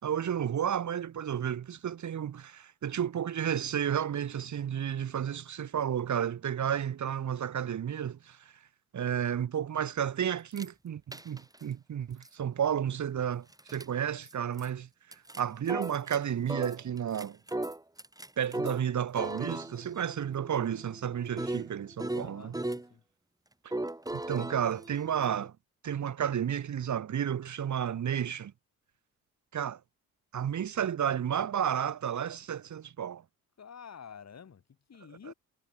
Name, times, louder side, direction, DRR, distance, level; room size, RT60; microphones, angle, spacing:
voice 1, 0.0-8.5 8.9-14.9 15.4-17.4 18.4-22.5 24.1-25.5 25.8-28.5 29.5-29.8 30.3-33.2, right 9 dB, 55° right, 2.1 m, -32 dB
sound 1, 10.5-10.7 11.1-11.6 12.2-12.3 13.5-13.8 14.3-14.4 14.6-14.7 15.1-16.2 16.5-18.8 19.2-22.9 23.7-25.5, right 1 dB, 10° right, 3.6 m, -37 dB
voice 2, 22.2-23.0 33.6-35.3, left 7 dB, 50° left, 5.3 m, -49 dB
cardioid pair, 75°, 34 cm